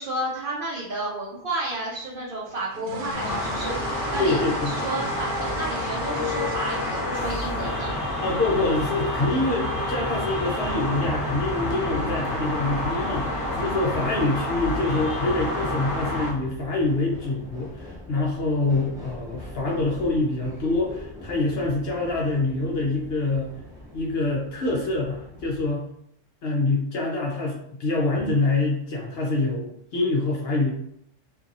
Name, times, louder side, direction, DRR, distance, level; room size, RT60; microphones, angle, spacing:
voice 1, 0.0-4.4 4.7-7.9, right 2 dB, 60° right, -5 dB, 0.6 m, -31 dB
sound 1, 2.5-10.5, right 1 dB, 75° right, 1.0 m, -41 dB
sound 2, 3.1-16.3, left 1 dB, 30° left, 0.7 m, -28 dB
voice 2, 4.2-4.8 8.2-13.3 13.6-23.5 23.9-25.9 26.4-30.7, left 2 dB, 60° left, -2 dB, 0.7 m, -25 dB
sound 3, 10.3-25.7, left 1 dB, 5° right, 0.5 m, -43 dB
2.7 x 2.6 x 2.5 m, 0.73 s
omnidirectional pair, 1.3 m